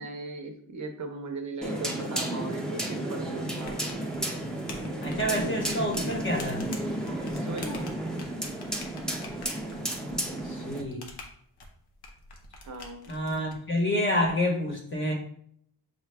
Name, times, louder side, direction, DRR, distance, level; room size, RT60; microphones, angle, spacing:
voice 1, 0.0-3.9 7.3-7.8 12.7-13.1, right 3 dB, 45° right, 4 dB, 0.6 m, -38 dB
sound 1, 1.6-10.8, right 1 dB, ahead, 0.6 m, -32 dB
sound 2, 3.6-13.6, left 3 dB, 85° left, 0.9 m, -46 dB
voice 2, 5.0-6.6 10.4-11.1 13.1-15.1, left 1 dB, 30° left, -1 dB, 1.1 m, -28 dB
6.5 x 2.3 x 3.3 m, 0.65 s
wide cardioid pair, 160°, 38 cm